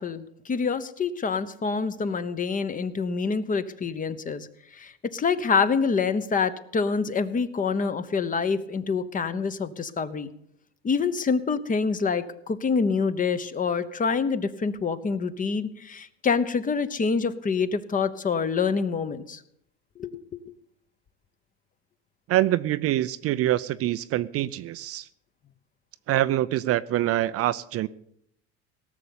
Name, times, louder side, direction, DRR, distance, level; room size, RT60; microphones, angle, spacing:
voice 1, 0.0-4.5 4.7-10.3 10.8-19.4 20.0-20.4, left 5 dB, 25° left, 12 dB, 1.0 m, -26 dB
voice 2, 22.3-25.1 26.1-27.9, right 14 dB, 45° right, 14 dB, 0.5 m, -25 dB
18.0 x 6.9 x 8.6 m, 0.72 s
supercardioid pair, 110°, 33 cm